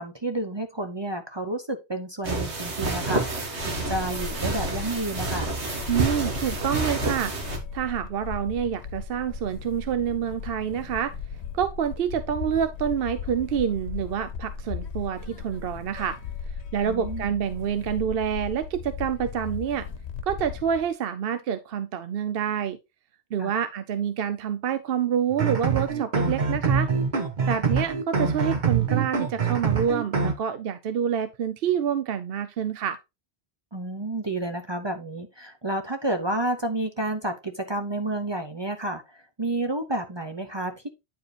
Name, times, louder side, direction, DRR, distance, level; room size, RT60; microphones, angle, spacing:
voice 1, 0.0-5.6 16.9-17.3 23.4-23.5 33.7-39.0 39.4-40.9, right 1 dB, 30° right, 0.7 m, -30 dB
sound 1, 2.2-7.6, right 3 dB, 90° right, 1.9 m, -29 dB
sound 2, 3.6-20.9, left 6 dB, 80° left, 1.0 m, -37 dB
voice 2, 5.9-7.3 7.7-11.1 11.5-16.2 16.7-19.9 20.3-22.8 23.3-26.9 27.5-33.0, right 8 dB, 65° right, 0.8 m, -27 dB
sound 3, 25.3-30.3, right 5 dB, 45° right, 1.1 m, -25 dB
9.3 x 4.8 x 3.2 m
omnidirectional pair, 1.1 m